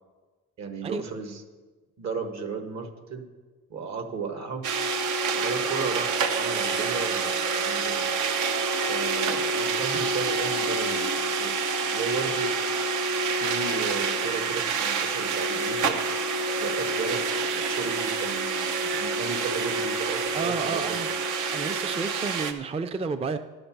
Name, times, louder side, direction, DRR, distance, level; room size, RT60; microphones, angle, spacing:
voice 1, 0.6-1.4 2.0-3.3 3.7-4.7 5.3-7.3 7.6-8.1 8.8-12.6 13.4-16.0 16.6-21.2, right 5 dB, 65° right, 7 dB, 1.3 m, -34 dB
sound 1, 4.6-22.5, right 4 dB, 85° right, 0.8 m, -27 dB
voice 2, 20.3-21.1 21.5-23.4, right 5 dB, 20° right, 9 dB, 0.4 m, -31 dB
11.0 x 6.5 x 5.9 m, 1.3 s
cardioid pair, 90°, 30 cm